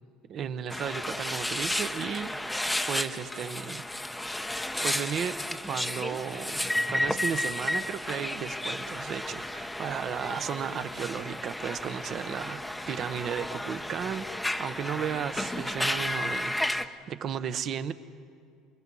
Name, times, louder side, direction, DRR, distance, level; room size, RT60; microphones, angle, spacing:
voice 1, 0.3-2.3 2.9-3.8 4.1-4.2 4.8-17.9, right 8 dB, 45° right, 12 dB, 1.0 m, -34 dB
sound 1, 0.7-16.9, left 1 dB, 5° left, 0.8 m, -32 dB
29.0 x 21.0 x 5.6 m, 2.3 s
supercardioid pair, 120°, 0 cm